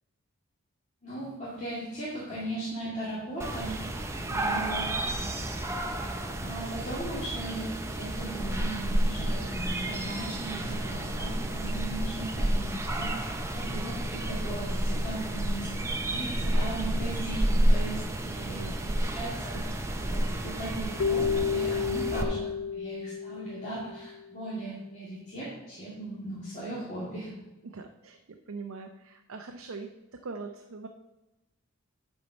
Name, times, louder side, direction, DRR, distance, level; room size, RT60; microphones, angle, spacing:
voice 1, 1.0-3.8 4.3-5.4 6.4-19.6 19.9-22.4 22.7-27.3, right 1 dB, 30° left, -8 dB, 2.2 m, -38 dB
sound 1, 3.4-22.2, right 1 dB, 15° right, 0.6 m, -30 dB
voice 2, 4.3-4.6 18.5-18.9 27.6-30.9, right 4 dB, 70° right, 3 dB, 0.6 m, -42 dB
Keyboard (musical), 21.0-24.2, left 6 dB, 70° left, 0.5 m, -31 dB
10.5 x 4.6 x 5.4 m, 1.0 s
head